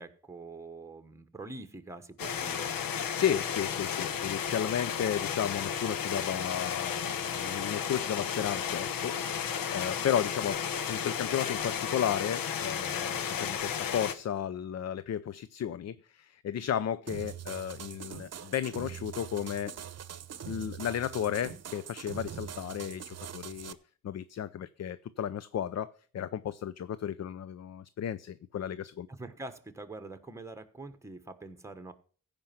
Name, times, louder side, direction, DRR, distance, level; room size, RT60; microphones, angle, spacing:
voice 1, 0.0-2.8 29.1-31.9, right 2 dB, 10° right, 1.2 m, -45 dB
sound 1, 2.2-14.1, left 8 dB, 80° left, 1.0 m, -33 dB
voice 2, 3.1-19.7 20.4-23.8 24.0-29.1, left 9 dB, 50° left, 0.5 m, -34 dB
sound 2, 17.1-23.7, right 9 dB, 50° right, 0.8 m, -43 dB
15.5 x 5.2 x 5.9 m
cardioid pair, 90°, 34 cm